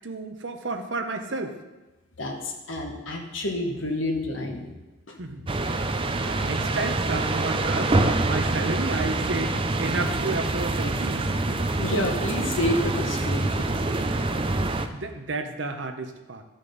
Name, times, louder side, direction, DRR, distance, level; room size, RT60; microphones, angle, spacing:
voice 1, 0.0-1.6 5.2-11.8 14.7-16.4, right 3 dB, 65° right, 6 dB, 0.9 m, -32 dB
voice 2, 2.2-4.7 5.1-5.2 11.8-13.7, left 1 dB, 80° left, 1 dB, 1.7 m, -29 dB
sound 1, 5.5-14.9, right 2 dB, 25° right, 0.5 m, -26 dB
14.0 x 6.3 x 4.0 m, 1.1 s
head